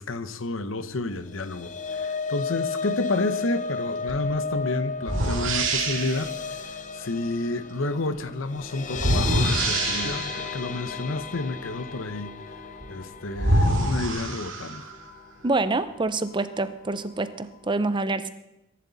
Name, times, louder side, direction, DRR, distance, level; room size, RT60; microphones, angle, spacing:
voice 1, 0.0-12.3 12.9-14.9, left 2 dB, 85° left, 0.9 m, -30 dB
sound 1, 1.2-15.4 15.8-16.0 16.3-16.4, left 5 dB, 40° left, 0.8 m, -34 dB
sound 2, 4.1-4.3 5.0-6.3 8.9-10.5 12.8-12.9 13.3-15.0, right 1 dB, 75° right, 2.3 m, -25 dB
voice 2, 15.4-18.3, right 2 dB, 25° right, 0.7 m, -26 dB
22.5 x 11.0 x 4.1 m
head